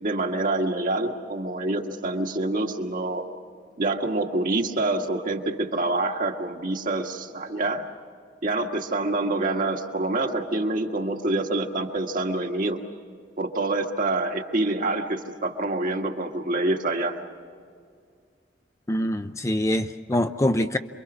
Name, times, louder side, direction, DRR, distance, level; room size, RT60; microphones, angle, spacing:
voice 1, 0.0-3.2 3.8-7.8 8.4-12.8 13.4-17.2, right 2 dB, 50° right, 3 dB, 1.6 m, -26 dB
voice 2, 18.9-20.8, left 1 dB, 15° left, 8 dB, 0.5 m, -24 dB
27.5 x 23.0 x 6.1 m, 2.1 s
head